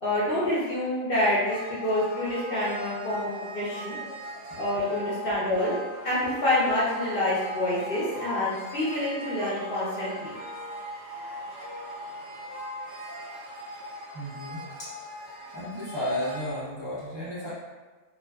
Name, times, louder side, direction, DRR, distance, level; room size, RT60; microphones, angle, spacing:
voice 1, 0.0-3.3 3.5-3.9 4.5-5.7 6.0-10.3, left 1 dB, 60° left, -8 dB, 0.6 m, -27 dB
sound 1, 1.5-16.5, equal, 85° right, 1.0 m, -39 dB
voice 2, 14.1-14.9 15.5-17.5, left 1 dB, 40° right, -12 dB, 0.4 m, -33 dB
2.4 x 2.2 x 2.2 m, 1.3 s
omnidirectional pair, 1.4 m